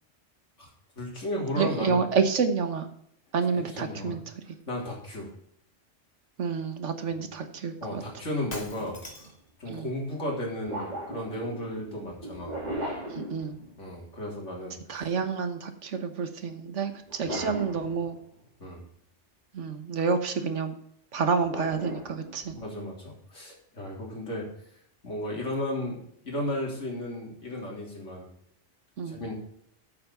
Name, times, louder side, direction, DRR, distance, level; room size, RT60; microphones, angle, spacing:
voice 1, 1.0-2.0 3.5-4.2 4.7-5.3 7.8-9.0 9.6-12.6 13.8-15.1 17.3-17.5 18.6-18.8 22.6-24.5 25.0-26.0 26.2-28.3 29.1-29.3, left 1 dB, 80° left, -2 dB, 3.7 m, -34 dB
voice 2, 1.6-2.9 3.3-4.2 6.4-8.0 9.7-9.9 13.1-13.6 14.9-18.2 19.5-20.7 21.1-22.6 29.0-29.2, right 5 dB, 80° right, 9 dB, 1.4 m, -29 dB
Shatter, 8.5-9.5, left 1 dB, 35° left, 1.6 m, -41 dB
sound 1, 9.1-9.3 10.7-14.0 17.0-18.5 21.5-22.7, right 1 dB, 35° right, 2.5 m, -38 dB
8.5 x 7.2 x 5.6 m, 0.70 s
omnidirectional pair, 1.2 m